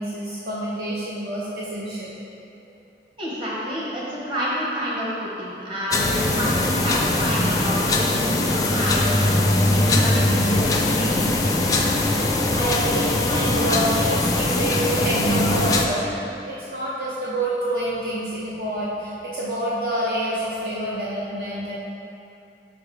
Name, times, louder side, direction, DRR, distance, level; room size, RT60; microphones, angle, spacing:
voice 1, 0.0-2.1 2.6-2.7 12.6-16.1 16.4-21.9, right 1 dB, 55° right, -7 dB, 0.8 m, -27 dB
voice 2, 3.2-11.5, equal, 30° right, -7 dB, 1.5 m, -29 dB
sound 1, 5.9-15.9, left 2 dB, 20° left, 0.4 m, -21 dB
5.7 x 5.0 x 4.8 m, 2.7 s
head